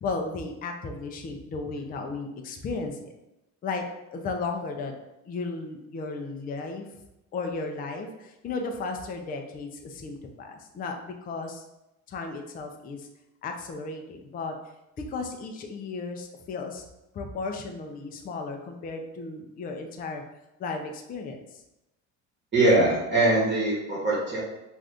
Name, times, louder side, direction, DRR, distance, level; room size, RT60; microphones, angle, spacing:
voice 1, 0.0-3.1 3.6-3.8 4.1-4.9 5.3-7.0 7.3-11.6 12.1-13.1 13.4-14.6 15.1-16.8 17.1-20.2 20.6-21.6, left 3 dB, 25° left, 4 dB, 0.4 m, -34 dB
voice 2, 22.5-24.4, right 2 dB, 25° right, -4 dB, 1.1 m, -22 dB
2.6 x 2.4 x 3.4 m, 0.92 s
supercardioid pair, 90°, 39 cm